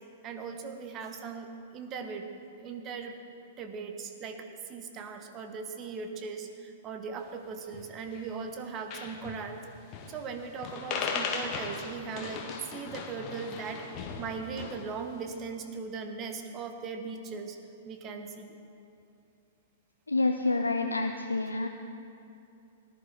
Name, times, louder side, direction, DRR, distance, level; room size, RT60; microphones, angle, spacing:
voice 1, 0.2-2.3 2.6-3.1 3.6-9.6 10.1-13.8 14.2-17.6 17.8-18.6, right 5 dB, 30° right, 6 dB, 1.1 m, -39 dB
sound 1, 7.7-8.3 8.6-8.7 8.9-9.5 9.9-10.3 10.6-14.9, left 5 dB, 35° left, 1.3 m, -37 dB
voice 2, 20.1-21.7, left 2 dB, 85° left, 5 dB, 0.5 m, -28 dB
18.0 x 11.0 x 3.5 m, 2.7 s
figure-of-eight pair, 105°, 0 cm